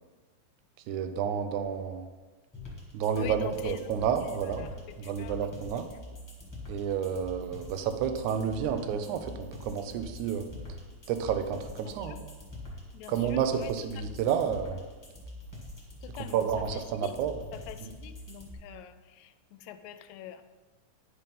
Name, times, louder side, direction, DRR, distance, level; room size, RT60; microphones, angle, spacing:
voice 1, 0.9-2.1 2.9-4.7 5.1-5.9 6.7-9.3 9.6-10.5 11.1-12.2 13.1-14.8 16.3-17.4 17.8-17.9, right 8 dB, 80° right, 8 dB, 2.1 m, -30 dB
sound 1, 2.5-18.5, left 1 dB, 10° left, 1.2 m, -44 dB
voice 2, 3.1-6.0 11.9-12.2 12.9-14.2 16.0-17.1 17.5-20.4, left 10 dB, 80° left, 9 dB, 1.8 m, -45 dB
10.5 x 4.4 x 5.3 m, 1.3 s
omnidirectional pair, 3.5 m